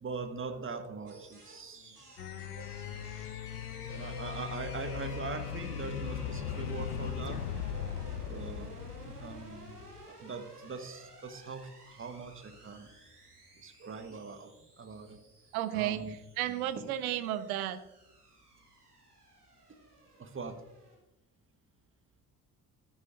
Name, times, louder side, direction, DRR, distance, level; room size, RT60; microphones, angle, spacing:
voice 1, 0.0-2.0 2.5-3.1 3.9-7.4 7.7-8.7 9.1-9.8 10.1-12.9 13.6-15.2 15.7-16.1 16.5-16.9 19.7-19.8 20.1-20.6, right 4 dB, 25° right, 7 dB, 1.5 m, -42 dB
sound 1, 1.1-21.0, right 2 dB, 90° right, 1.6 m, -54 dB
sound 2, 2.2-10.1, left 9 dB, 80° left, 0.5 m, -39 dB
voice 2, 15.5-16.0 16.4-17.8, right 13 dB, 70° right, 13 dB, 0.8 m, -33 dB
13.5 x 9.7 x 2.6 m, 0.92 s
figure-of-eight pair, 50°, 45 cm